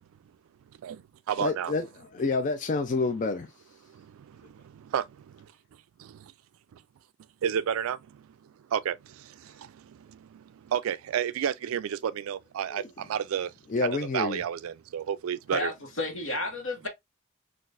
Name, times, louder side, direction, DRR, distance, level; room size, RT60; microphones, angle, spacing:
voice 1, 0.8-1.7 3.9-5.5 6.0-6.3 7.4-8.2 8.7-13.5 14.1-15.7, right 9 dB, 80° right, 0.3 m, -32 dB
voice 2, 1.4-3.5 12.7-12.9 13.7-14.4, left 3 dB, 35° left, 0.3 m, -28 dB
voice 3, 15.5-16.9, left 2 dB, 70° left, 1.1 m, -32 dB
3.9 x 2.4 x 2.4 m
head